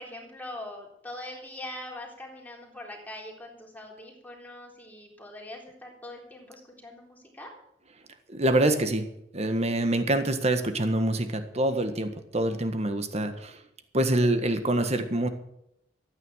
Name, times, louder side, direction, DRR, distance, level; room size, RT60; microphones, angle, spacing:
voice 1, 0.0-7.5, left 1 dB, 10° left, -1 dB, 3.8 m, -42 dB
voice 2, 8.3-9.1 9.3-13.6 13.9-15.3, right 1 dB, 40° right, 8 dB, 1.6 m, -25 dB
13.5 x 9.5 x 7.3 m, 0.79 s
head